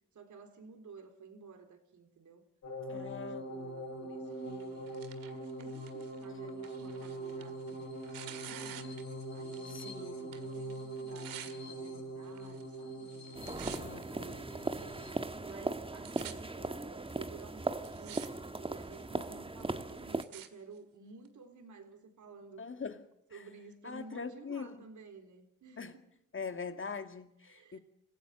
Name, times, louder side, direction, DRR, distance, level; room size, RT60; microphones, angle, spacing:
voice 1, 0.1-2.4 2.9-8.8 9.3-13.5 14.1-14.9 15.4-22.7 23.3-26.0 27.5-27.8, right 5 dB, 60° right, 4.0 m, -53 dB
sound 1, 2.6-15.1, right 1 dB, 50° left, 6.8 m, -43 dB
voice 2, 2.9-3.5 9.7-10.3 13.4-14.4 19.1-19.3 22.6-23.0 23.3-23.4 23.8-24.8 25.8-25.9 26.3-27.8, left 5 dB, 35° left, 2.2 m, -43 dB
Tearing, 4.5-9.9 10.2-11.5 12.3-12.8 13.1-14.0 14.7-14.8 15.5-15.6 15.8-16.3 17.1-17.2 17.7-18.3 18.6-19.0 19.6-20.5 21.3-21.4, right 11 dB, 80° right, 2.0 m, -49 dB
sound 2, 13.3-20.2, right 2 dB, 15° right, 1.5 m, -38 dB
26.5 x 15.5 x 7.5 m
supercardioid pair, 60°, 34 cm